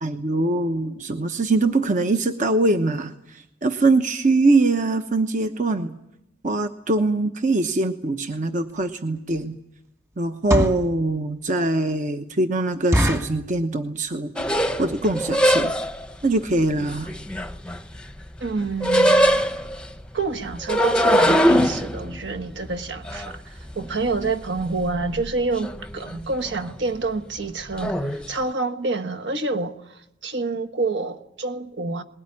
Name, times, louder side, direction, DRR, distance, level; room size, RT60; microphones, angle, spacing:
voice 1, 0.0-3.1 3.6-5.9 6.4-9.6 10.2-14.3 14.8-15.7 16.2-17.1, right 2 dB, 45° right, 1.0 m, -22 dB
sound 1, 8.7-8.8 9.3-9.5 10.2-10.9 11.5-11.6 11.9-12.0 12.3-12.4 12.9-13.4 14.0-14.3 14.6-14.7 14.9-15.2 15.7-15.8 16.0-16.2 16.5-16.6 16.8-16.9, equal, 15° right, 1.6 m, -23 dB
sound 2, 14.4-16.1 16.8-18.1 18.4-19.9 20.5-24.3 24.6-25.3 25.6-26.1 26.5-26.7 27.8-28.2, equal, 5° left, 0.9 m, -21 dB
voice 2, 18.4-19.5 20.1-32.0, right 3 dB, 65° right, 1.4 m, -28 dB
20.5 x 18.0 x 9.8 m
head